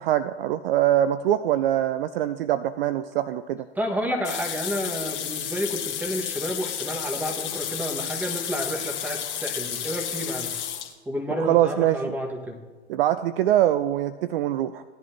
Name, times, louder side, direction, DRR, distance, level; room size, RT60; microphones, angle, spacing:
voice 1, 0.0-3.7 11.4-12.1 12.9-14.8, right 12 dB, 55° right, 14 dB, 0.5 m, -23 dB
voice 2, 3.8-10.5 11.1-12.6, equal, 5° right, 2 dB, 1.6 m, -30 dB
sound 1, 4.2-10.9, left 9 dB, 30° left, 1.7 m, -32 dB
17.0 x 10.5 x 2.9 m, 1.4 s
figure-of-eight pair, 95°, 34 cm